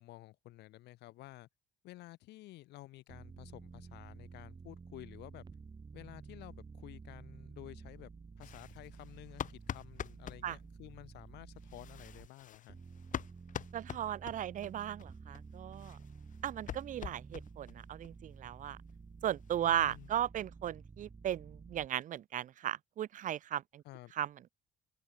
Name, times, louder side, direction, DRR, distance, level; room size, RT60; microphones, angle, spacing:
voice 1, 0.0-1.5 1.8-5.4 5.9-8.1 8.4-12.8 19.6-20.1 23.8-24.1, left 17 dB, 80° left, 7.2 m, -52 dB
sound 1, 3.1-12.3 12.7-21.9, right 5 dB, 25° right, 1.9 m, -52 dB
sound 2, 8.4-10.4 11.6-14.7 15.0-15.1 15.3-15.4 15.7-17.8 18.0-18.1 18.5-18.6 18.9-19.0 19.3-20.1, left 9 dB, 50° left, 1.6 m, -45 dB
voice 2, 13.7-16.0 16.4-18.8 19.2-23.8 24.2-24.5, right 11 dB, 50° right, 0.6 m, -36 dB
open air
cardioid pair, 110°, 17 cm